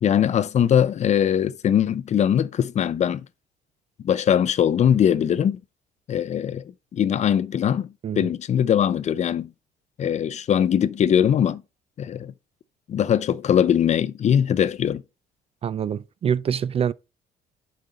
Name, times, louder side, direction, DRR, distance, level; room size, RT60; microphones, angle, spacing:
voice 1, 0.0-3.3 4.0-5.6 6.1-6.6 6.9-7.9 8.2-9.5 10.0-11.6 12.0-12.3 12.9-15.0, left 9 dB, 40° left, 0.6 m, -21 dB
voice 2, 15.6-16.9, right 8 dB, 35° right, 0.4 m, -25 dB
7.7 x 5.2 x 4.2 m
cardioid pair, 110°, 17 cm